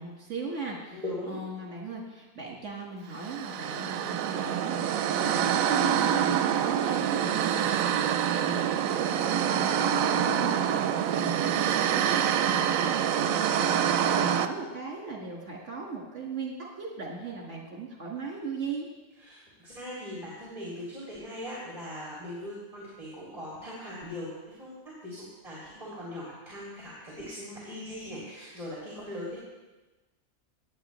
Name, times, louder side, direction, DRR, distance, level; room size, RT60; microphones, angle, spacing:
voice 1, 0.0-18.9, right 4 dB, 60° right, -2 dB, 2.0 m, -38 dB
voice 2, 0.9-1.4 19.2-24.3 24.6-29.4, left 1 dB, 25° right, -6 dB, 2.8 m, -40 dB
sound 1, 3.2-14.5, right 9 dB, 85° right, 1.0 m, -26 dB
18.5 x 8.2 x 3.1 m, 1.2 s
omnidirectional pair, 1.4 m